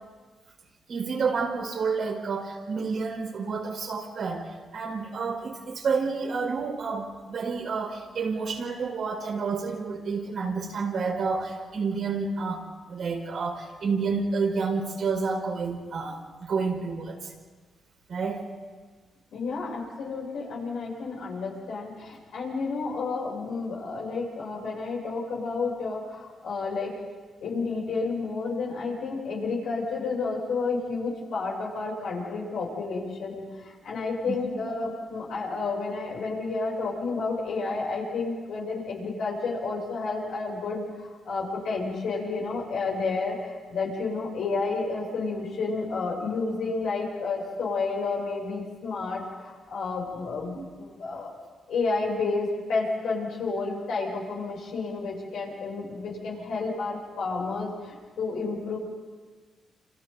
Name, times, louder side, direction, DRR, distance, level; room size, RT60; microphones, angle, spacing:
voice 1, 0.9-17.3 18.1-18.5 34.3-34.4 50.5-50.7, right 4 dB, 65° right, 0 dB, 4.9 m, -29 dB
voice 2, 19.3-27.0 27.4-51.3 51.7-58.8, left 4 dB, 80° left, -3 dB, 7.9 m, -31 dB
29.0 x 27.5 x 4.1 m, 1.4 s
supercardioid pair, 60°, 0 cm